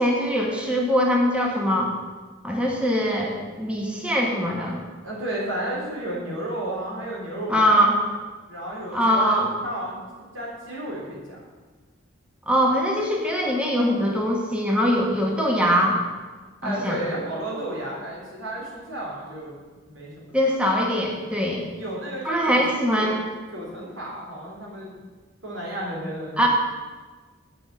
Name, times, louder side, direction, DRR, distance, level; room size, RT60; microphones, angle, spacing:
voice 1, 0.0-1.9 2.4-4.8 7.5-8.0 8.9-9.5 12.5-16.0 16.6-17.0 20.3-21.6 22.2-23.1 26.4-26.5, equal, 5° right, -1 dB, 1.3 m, -22 dB
voice 2, 5.0-7.9 8.5-10.0 10.3-11.4 16.6-19.6 19.9-20.4 21.8-22.6 23.0-23.1 23.5-25.1 25.4-26.5, right 1 dB, 80° right, -4 dB, 3.8 m, -32 dB
8.6 x 6.2 x 7.6 m, 1.3 s
head